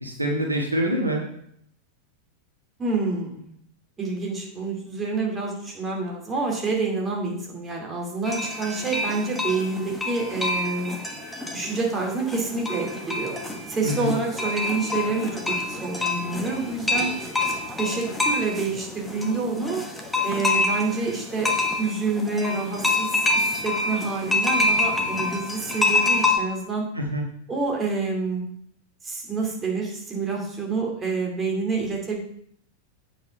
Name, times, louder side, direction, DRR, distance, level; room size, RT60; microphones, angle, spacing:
voice 1, 0.0-1.2 13.8-14.2 26.9-27.2, equal, 85° right, 0 dB, 1.5 m, -25 dB
voice 2, 2.8-3.5 4.0-11.0 11.5-13.4 13.7-17.1 17.8-19.8 20.2-21.5 21.8-26.9 27.5-28.4 29.0-32.2, right 3 dB, 20° right, -1 dB, 2.6 m, -27 dB
sound 1, 8.2-26.4, left 2 dB, 5° left, 1.3 m, -27 dB
8.4 x 4.9 x 5.6 m, 0.68 s
figure-of-eight pair, 90°, 0 cm